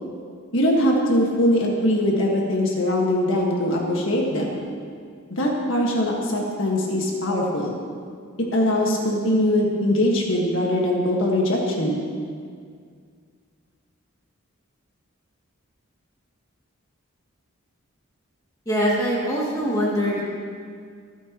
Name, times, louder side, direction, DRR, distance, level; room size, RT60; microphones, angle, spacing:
voice 1, 0.5-4.6 5.3-7.8 8.5-12.0, left 1 dB, 65° left, -2 dB, 1.7 m, -22 dB
voice 2, 18.7-20.2, equal, 15° left, -6 dB, 2.4 m, -23 dB
25.0 x 9.3 x 3.0 m, 2.1 s
head